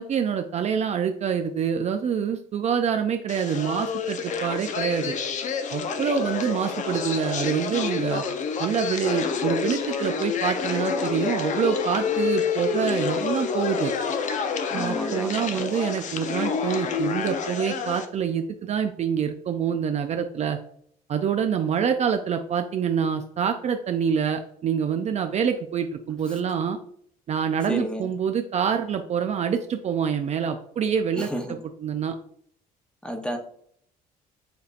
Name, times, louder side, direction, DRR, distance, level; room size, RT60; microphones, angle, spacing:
voice 1, 0.0-5.2 5.7-8.2 8.6-13.9 14.7-20.6 21.1-26.8 27.3-31.3 31.8-32.1, right 7 dB, 40° right, 6 dB, 0.4 m, -26 dB
sound 1, 3.3-18.1, left 6 dB, 45° left, 0.6 m, -28 dB
voice 2, 14.7-15.7 27.7-28.1 31.2-31.5 33.0-33.4, equal, 5° left, 4 dB, 0.8 m, -31 dB
6.8 x 2.7 x 2.5 m, 0.62 s
cardioid pair, 110°, 17 cm